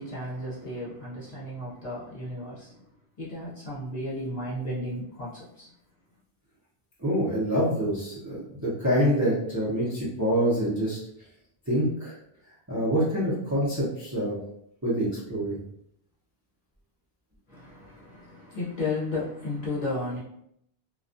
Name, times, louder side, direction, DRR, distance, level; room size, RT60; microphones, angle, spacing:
voice 1, 0.0-2.9 3.2-5.7 17.5-20.2, left 2 dB, 45° left, -7 dB, 0.7 m, -34 dB
voice 2, 7.0-11.0 11.7-12.1 12.7-14.4 14.8-15.6, equal, 20° right, -8 dB, 0.6 m, -26 dB
2.3 x 2.2 x 2.5 m, 0.74 s
omnidirectional pair, 1.1 m